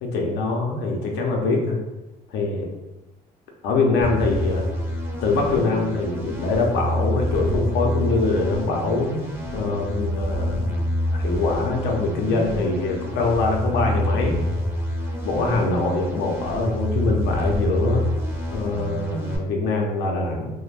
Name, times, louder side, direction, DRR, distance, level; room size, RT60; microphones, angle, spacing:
voice 1, 0.0-1.8 2.3-2.7 3.6-4.7 5.2-9.1 9.5-10.6 11.1-14.4 15.2-18.0 18.5-20.5, left 3 dB, 90° left, 1 dB, 0.6 m, -23 dB
sound 1, 4.0-19.4, equal, 15° right, 0.5 m, -27 dB
2.4 x 2.1 x 3.2 m, 1.1 s
cardioid pair, 110°, 17 cm